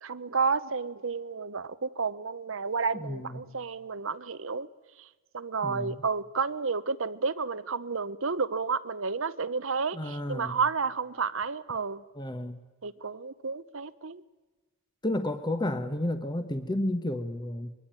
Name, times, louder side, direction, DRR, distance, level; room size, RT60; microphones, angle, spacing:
voice 1, 0.0-4.7 5.0-5.1 5.3-12.0 12.8-14.2, right 5 dB, 70° right, 1.0 m, -31 dB
voice 2, 2.9-3.4 5.6-6.0 9.9-10.6 12.1-12.6 15.0-17.7, left 1 dB, 20° left, 1.3 m, -32 dB
24.0 x 22.0 x 9.1 m
head